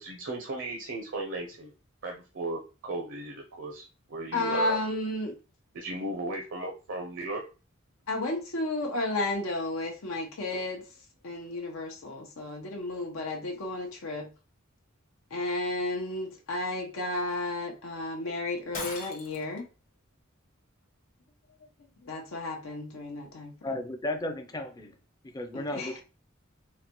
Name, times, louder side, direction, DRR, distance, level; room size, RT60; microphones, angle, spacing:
voice 1, 0.0-1.7 2.0-4.8 5.7-7.4, right 2 dB, 65° right, 0.6 m, -36 dB
voice 2, 4.3-5.3 8.1-10.8 11.2-14.3 15.3-19.7 22.0-23.5 25.5-26.0, left 2 dB, 85° left, 0.7 m, -32 dB
Shatter, 18.7-19.6, left 4 dB, 40° left, 0.9 m, -38 dB
voice 3, 23.6-24.9 25.3-26.0, left 1 dB, 20° left, 0.4 m, -34 dB
3.9 x 2.2 x 2.9 m
head